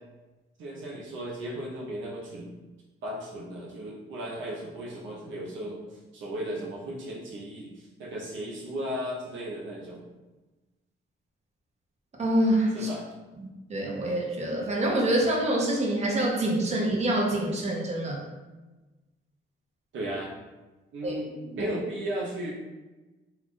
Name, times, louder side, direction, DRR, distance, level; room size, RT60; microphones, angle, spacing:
voice 1, 0.6-2.5 3.0-10.0 12.7-13.0 19.9-20.3 20.9-22.5, right 1 dB, 75° right, -3 dB, 0.7 m, -35 dB
voice 2, 12.2-12.9 13.4-18.2 21.0-21.1, right 1 dB, 35° right, -2 dB, 0.8 m, -26 dB
2.4 x 2.4 x 3.5 m, 1.1 s
cardioid pair, 90°, 20 cm